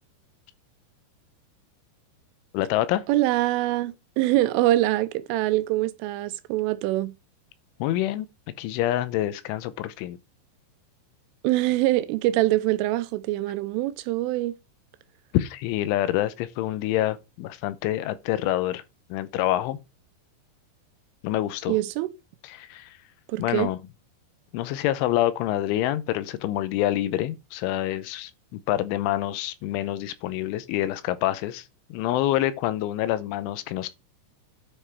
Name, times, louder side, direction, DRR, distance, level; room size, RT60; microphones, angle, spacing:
voice 1, 2.5-3.0 7.8-8.3 8.6-10.2 15.3-18.8 19.1-19.8 21.2-21.8 22.4-23.0 23.4-23.8 24.5-31.6 31.9-33.9, left 13 dB, 80° left, 3.2 m, -26 dB
voice 2, 3.1-7.1 11.4-14.5 21.7-22.1 23.3-23.7, right 16 dB, 85° right, 3.2 m, -24 dB
9.9 x 5.7 x 4.5 m
omnidirectional pair, 5.7 m